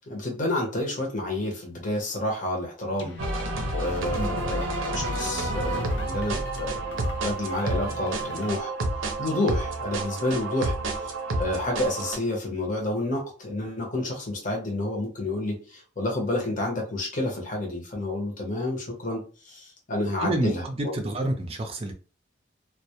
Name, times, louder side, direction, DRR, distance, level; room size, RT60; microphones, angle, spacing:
voice 1, 0.1-3.2 3.7-6.9 7.2-8.7 9.2-10.7 11.4-20.9, left 1 dB, 40° left, 0.8 m, -29 dB
sound 1, 3.0-8.6, left 3 dB, 65° left, 0.4 m, -41 dB
sound 2, 3.2-12.2, right 2 dB, 85° right, 0.5 m, -30 dB
voice 2, 20.2-21.9, right 1 dB, 30° right, 0.4 m, -28 dB
2.2 x 2.1 x 2.8 m
head